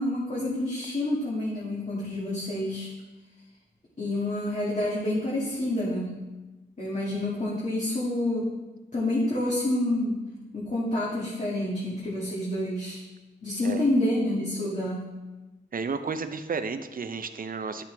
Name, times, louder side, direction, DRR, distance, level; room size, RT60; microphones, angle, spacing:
voice 1, 0.0-2.9 4.0-6.1 6.8-8.5 8.9-10.2 10.5-13.0 13.4-15.0, left 1 dB, 40° left, -7 dB, 2.5 m, -28 dB
voice 2, 15.7-17.8, right 5 dB, 45° right, 9 dB, 0.7 m, -32 dB
11.0 x 7.5 x 3.5 m, 1.1 s
cardioid pair, 80°, 20 cm